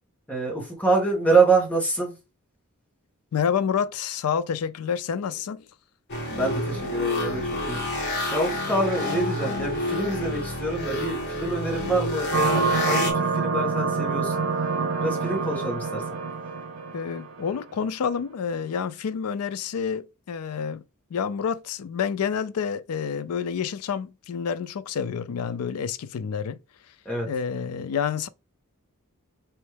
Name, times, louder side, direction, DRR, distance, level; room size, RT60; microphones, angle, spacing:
voice 1, 0.3-2.1 6.3-14.3 15.0-16.0 27.0-27.3, right 3 dB, 5° left, 1.6 m, -26 dB
voice 2, 3.3-5.7 16.9-20.8 21.1-26.6 27.2-28.3, left 7 dB, 80° left, 0.4 m, -28 dB
sound 1, 6.1-13.1, left 1 dB, 50° left, 1.3 m, -28 dB
sound 2, 12.3-17.6, right 5 dB, 65° right, 1.0 m, -26 dB
4.4 x 3.1 x 3.3 m
head